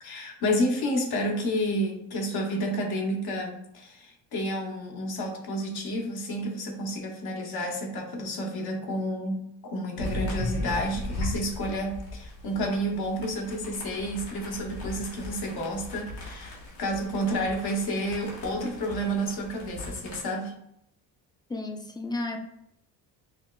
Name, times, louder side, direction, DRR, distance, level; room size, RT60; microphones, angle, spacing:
voice 1, 0.0-20.5, equal, 65° left, 1 dB, 1.0 m, -30 dB
sound 1, 10.0-20.2, left 1 dB, 80° left, 1.5 m, -38 dB
voice 2, 21.5-22.4, left 2 dB, 10° left, 4 dB, 0.5 m, -32 dB
5.5 x 2.2 x 2.3 m, 0.75 s
supercardioid pair, 80°, 41 cm